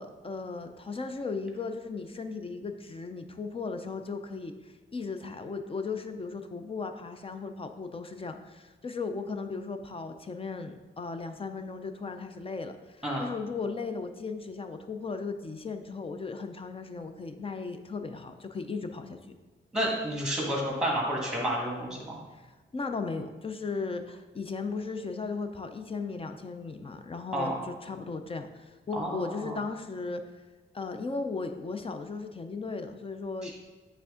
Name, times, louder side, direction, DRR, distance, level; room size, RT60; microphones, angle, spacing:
voice 1, 0.0-4.5 4.9-19.2 22.3-22.4 22.7-30.2 30.7-33.5, left 4 dB, 30° left, 7 dB, 0.4 m, -36 dB
voice 2, 19.7-22.2 27.3-27.6 28.9-29.6 33.4-33.5, right 1 dB, 5° right, -2 dB, 1.5 m, -30 dB
8.5 x 3.4 x 3.7 m, 1.3 s
wide cardioid pair, 130°, 20 cm